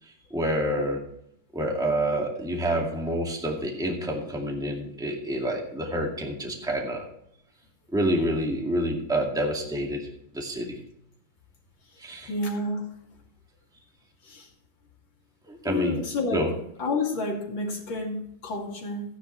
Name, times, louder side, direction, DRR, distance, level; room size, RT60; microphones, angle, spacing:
voice 1, 0.3-1.0 1.5-7.0 7.9-10.8 12.0-12.3 15.5-16.0 16.3-16.5, right 1 dB, ahead, 0 dB, 2.0 m, -28 dB
voice 2, 12.3-12.9 14.2-14.5 15.6-16.5 16.8-19.0, left 2 dB, 65° left, 0 dB, 3.1 m, -29 dB
14.5 x 10.5 x 3.3 m, 0.75 s
omnidirectional pair, 2.2 m